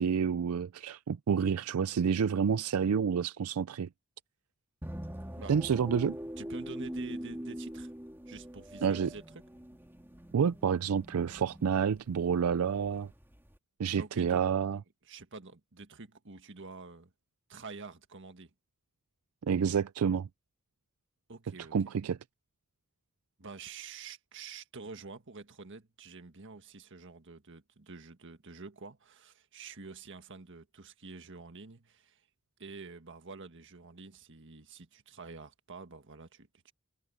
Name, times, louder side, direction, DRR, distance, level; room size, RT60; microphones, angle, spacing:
voice 1, 0.0-3.9 5.5-6.2 8.8-9.1 10.3-13.1 13.8-14.8 19.4-20.3 21.7-22.2, right 7 dB, 90° right, 0.4 m, -29 dB
sound 1, 4.8-13.6, equal, 10° right, 2.1 m, -43 dB
voice 2, 6.4-7.9 8.3-9.4 14.0-14.4 15.0-17.1 17.5-18.5 21.3-21.7 23.4-32.3 32.6-36.7, right 4 dB, 60° right, 1.7 m, -48 dB
head